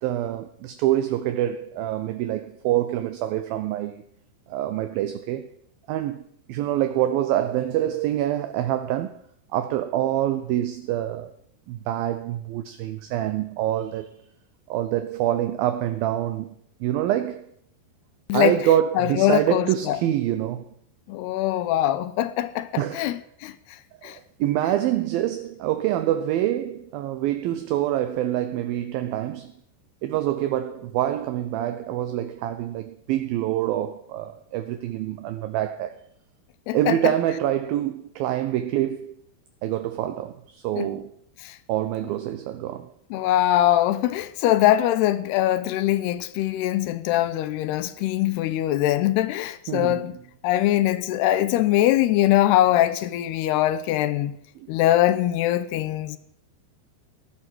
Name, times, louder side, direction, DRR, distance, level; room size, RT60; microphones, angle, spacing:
voice 1, 0.0-4.0 4.5-5.5 5.9-6.2 6.5-9.2 9.5-11.3 11.7-14.1 14.7-16.5 16.8-17.5 18.3-20.7 22.8-23.2 24.0-29.5 30.0-36.0 36.7-39.1 39.6-41.1 41.7-42.9 49.7-50.1 54.6-54.7, right 12 dB, 75° right, 2.2 m, -26 dB
voice 2, 19.0-20.0 21.1-23.6 24.0-24.2 36.7-37.0 40.8-40.9 41.4-41.6 43.1-50.1 50.4-54.4 54.7-56.2, left 13 dB, 80° left, 2.7 m, -22 dB
16.0 x 11.5 x 7.8 m
omnidirectional pair, 5.0 m